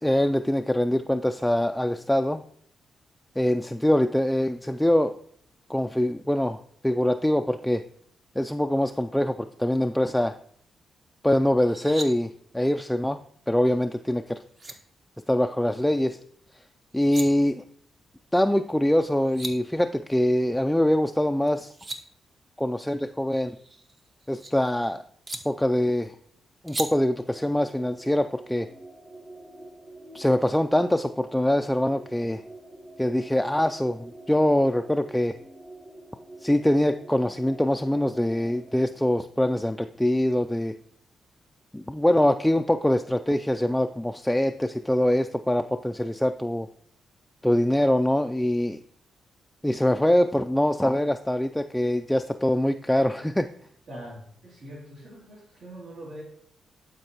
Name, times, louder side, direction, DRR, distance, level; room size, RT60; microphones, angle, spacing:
voice 1, 0.0-2.4 3.4-5.1 5.7-7.8 8.4-10.3 11.2-13.2 13.5-14.4 15.3-16.2 16.9-17.6 18.3-21.7 22.6-23.6 24.3-25.0 25.5-26.1 26.6-28.7 30.1-32.4 33.0-35.3 36.4-40.7 41.7-46.7 47.4-48.8 49.6-53.5, left 1 dB, 5° left, 6 dB, 0.3 m, -24 dB
sound 1, 11.6-12.1 14.1-14.2 14.5-14.7 16.8-17.3 18.9-19.0 19.2-19.5 21.5-22.0 23.5-24.5 25.3-25.4 26.7-26.9, right 2 dB, 45° right, 1.0 m, -36 dB
sound 2, 27.0-38.9, right 1 dB, 25° right, 1.4 m, -46 dB
voice 2, 53.9-56.2, right 1 dB, 75° right, -6 dB, 2.8 m, -42 dB
11.0 x 4.5 x 2.9 m, 0.62 s
cardioid pair, 60°, 0 cm